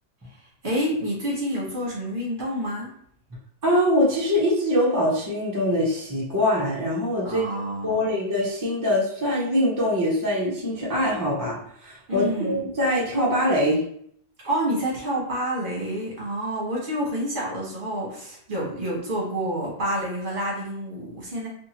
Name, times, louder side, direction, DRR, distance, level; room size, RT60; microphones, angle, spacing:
voice 1, 0.3-2.9 7.2-8.1 12.1-12.6 14.4-21.5, equal, 55° right, -5 dB, 1.2 m, -28 dB
voice 2, 3.6-7.4 7.8-13.8, left 1 dB, 20° right, -5 dB, 0.6 m, -23 dB
2.7 x 2.5 x 2.8 m, 0.66 s
omnidirectional pair, 1.1 m